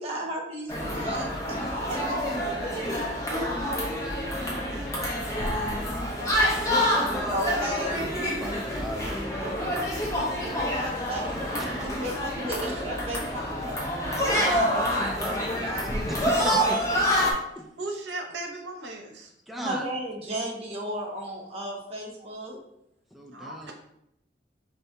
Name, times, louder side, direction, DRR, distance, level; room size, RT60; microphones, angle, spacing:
voice 1, 0.0-2.0 2.7-2.8 7.3-8.0 10.1-13.9 17.4-17.6 19.6-22.6, equal, 35° right, -2 dB, 0.9 m, -34 dB
sound 1, 0.7-17.3, equal, 15° left, 0.7 m, -27 dB
voice 2, 5.7-6.7 17.8-19.3 23.3-23.7, right 2 dB, 75° right, 2 dB, 0.8 m, -38 dB
voice 3, 7.0-8.1 8.4-10.3 11.5-11.7 14.4-17.1 17.5-17.7 19.5-19.9 23.1-23.7, equal, ahead, 1 dB, 0.4 m, -39 dB
4.1 x 2.7 x 3.4 m, 0.77 s
head